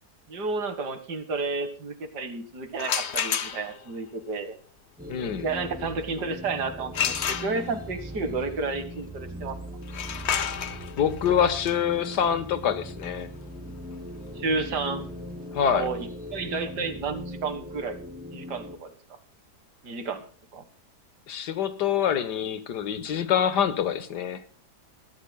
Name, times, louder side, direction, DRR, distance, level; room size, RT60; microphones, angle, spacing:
voice 1, 0.3-4.6 5.4-9.6 14.4-15.0 15.7-18.0 18.3-19.0 19.8-20.2 20.5-20.6, right 4 dB, 75° right, 9 dB, 2.3 m, -31 dB
sound 1, 2.7-3.9 6.9-8.0 9.8-15.5, left 8 dB, 50° left, 1.0 m, -32 dB
sound 2, 5.0-18.8, equal, 5° right, 2.6 m, -40 dB
voice 2, 5.1-5.5 11.0-13.3 15.5-15.9 21.3-24.4, left 8 dB, 80° left, 12 dB, 1.8 m, -25 dB
22.0 x 13.5 x 2.3 m, 0.42 s
omnidirectional pair, 1.8 m